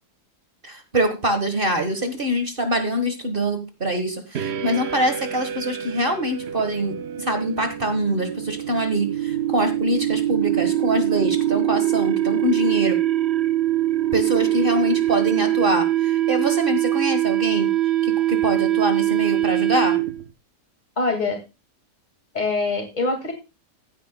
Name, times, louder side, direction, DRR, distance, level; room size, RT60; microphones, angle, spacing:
voice 1, 0.6-13.0 14.1-17.7 18.0-20.0, right 1 dB, 35° right, 7 dB, 1.5 m, -24 dB
sound 1, 4.3-20.3, right 13 dB, 55° right, 0.7 m, -23 dB
voice 2, 21.0-21.4 22.3-23.3, left 3 dB, 25° left, 4 dB, 2.1 m, -24 dB
15.0 x 9.2 x 2.2 m, 0.26 s
omnidirectional pair, 1.8 m